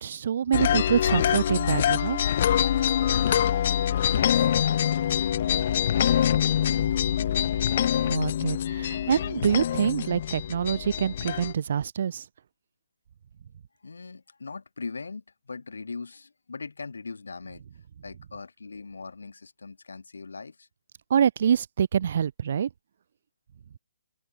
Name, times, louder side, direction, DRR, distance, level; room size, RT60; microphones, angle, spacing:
voice 1, 0.0-2.2 8.1-12.2 21.1-22.7, right 8 dB, 55° right, 0.7 m, -26 dB
sound 1, 0.5-11.5, left 10 dB, 45° left, 0.8 m, -25 dB
voice 2, 4.1-4.8 5.1-5.4 5.9-7.7 13.8-17.6 18.0-20.7, left 4 dB, 70° left, 4.7 m, -41 dB
figure-of-eight pair, 130°, 0 cm